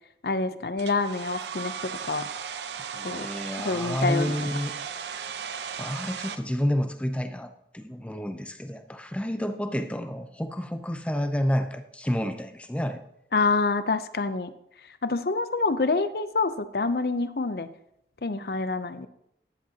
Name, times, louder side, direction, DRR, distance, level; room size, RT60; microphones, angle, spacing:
voice 1, 0.2-2.3 3.0-3.3 3.6-4.5 13.3-14.5 15.0-17.7 18.2-19.1, left 3 dB, 60° left, 12 dB, 0.6 m, -27 dB
Domestic sounds home sounds, 0.8-6.4, right 7 dB, 75° right, 0.7 m, -36 dB
voice 2, 2.9-4.7 5.8-13.0, equal, 5° left, 8 dB, 0.6 m, -30 dB
14.5 x 10.5 x 2.8 m, 0.78 s
head